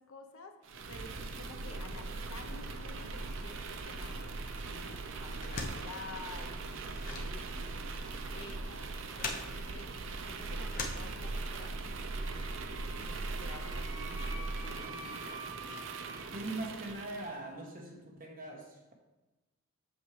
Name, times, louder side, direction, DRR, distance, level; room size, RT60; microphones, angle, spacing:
voice 1, 0.0-15.3, left 3 dB, 70° left, 4 dB, 0.8 m, -51 dB
sound 1, 0.6-17.4, right 3 dB, 55° right, 0.5 m, -40 dB
sound 2, 5.3-11.7, left 3 dB, 40° left, 0.7 m, -43 dB
Wind instrument woodwind instrument, 12.1-16.3, right 2 dB, 20° right, 0.7 m, -48 dB
voice 2, 16.3-18.9, right 2 dB, 40° right, 0 dB, 1.2 m, -41 dB
7.8 x 6.3 x 3.3 m, 1.0 s
head